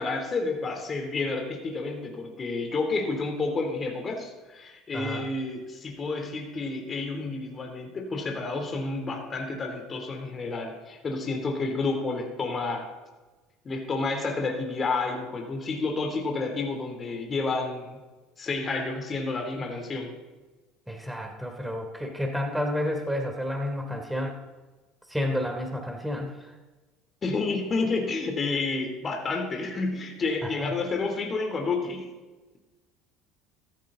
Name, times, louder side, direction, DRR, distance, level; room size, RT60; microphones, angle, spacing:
voice 1, 0.0-12.9 13.6-18.0 18.4-20.1 27.2-32.1, left 3 dB, 35° left, 3 dB, 3.0 m, -30 dB
voice 2, 20.9-24.4 25.1-26.5 30.4-30.7, left 1 dB, 5° right, 3 dB, 3.0 m, -30 dB
14.5 x 14.5 x 3.8 m, 1.2 s
supercardioid pair, 85°, 0 cm